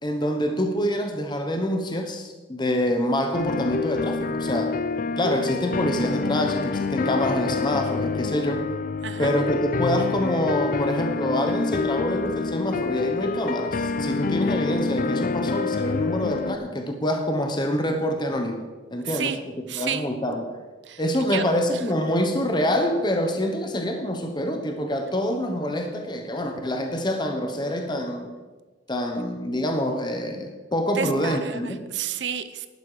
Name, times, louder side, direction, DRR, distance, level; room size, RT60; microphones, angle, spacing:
voice 1, 0.0-4.8 5.2-8.6 9.2-20.5 21.0-28.3 28.9-31.8, equal, 25° left, 4 dB, 1.0 m, -26 dB
sound 1, 3.3-16.6, left 4 dB, 45° left, 0.5 m, -27 dB
voice 2, 9.0-9.3 19.0-19.4 19.7-20.1 20.8-21.0 21.3-21.4 21.7-21.8 30.9-32.7, right 8 dB, 65° right, 11 dB, 0.8 m, -30 dB
11.5 x 11.0 x 4.9 m, 1.3 s
head